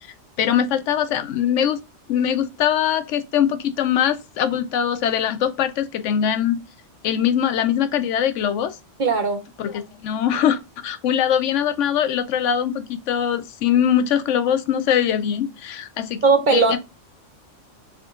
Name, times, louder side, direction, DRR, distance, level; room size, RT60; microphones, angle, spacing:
voice 1, 0.4-1.8 2.1-6.6 7.0-8.8 9.6-16.2 16.5-16.8, left 9 dB, 80° left, 0.9 m, -22 dB
voice 2, 9.0-9.4 16.2-16.8, right 4 dB, 50° right, 0.7 m, -18 dB
3.6 x 3.5 x 3.6 m
omnidirectional pair, 1.3 m